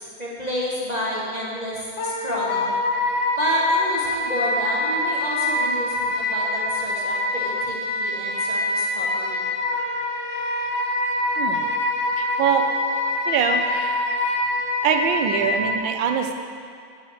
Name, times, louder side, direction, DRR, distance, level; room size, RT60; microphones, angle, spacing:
voice 1, 0.0-1.7 2.0-2.7 3.4-9.4, equal, 30° right, -5 dB, 0.9 m, -29 dB
Wind instrument woodwind instrument, 2.0-15.7, left 2 dB, 50° left, 1.0 m, -25 dB
voice 2, 11.4-11.7 12.2-12.7 13.3-14.1 14.8-16.4, right 7 dB, 80° right, 5 dB, 1.4 m, -23 dB
8.2 x 5.0 x 7.0 m, 2.3 s
omnidirectional pair, 2.1 m